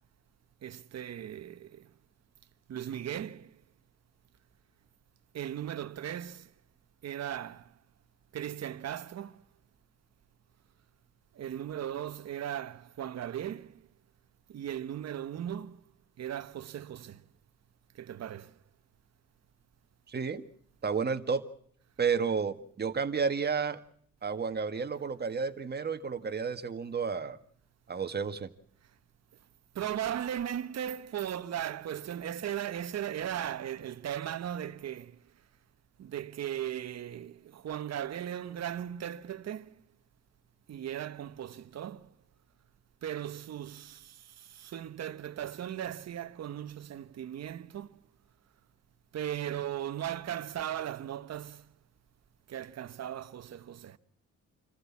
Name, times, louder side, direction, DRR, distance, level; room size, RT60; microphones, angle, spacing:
voice 1, 0.6-1.9 2.7-3.6 5.3-6.5 7.0-7.8 8.3-9.5 11.3-13.9 14.5-15.8 16.2-17.2 17.9-18.6 29.7-35.2 36.0-39.8 40.7-42.1 43.0-48.0 49.1-51.7 52.5-54.0, right 10 dB, 60° right, 1.2 m, -37 dB
voice 2, 20.1-20.5 20.8-21.4 22.0-23.8 24.2-27.4 27.9-28.5, right 5 dB, 35° right, 1.7 m, -31 dB
27.0 x 15.0 x 7.3 m
cardioid pair, 90°, 30 cm